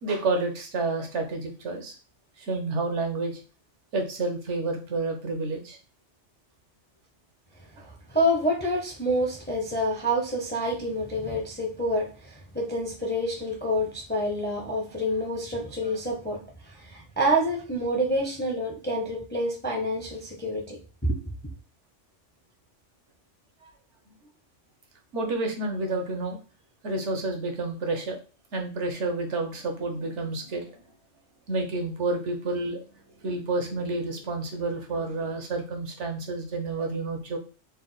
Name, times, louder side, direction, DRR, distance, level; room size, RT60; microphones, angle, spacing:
voice 1, 0.0-1.9 2.5-3.4 3.9-5.8 25.1-26.4 26.8-28.2 28.5-30.7 31.5-32.8 33.2-37.4, right 3 dB, 70° right, 4 dB, 1.2 m, -29 dB
voice 2, 7.8-21.2, equal, 10° left, 0 dB, 0.6 m, -28 dB
4.1 x 2.3 x 3.9 m, 0.34 s
omnidirectional pair, 1.2 m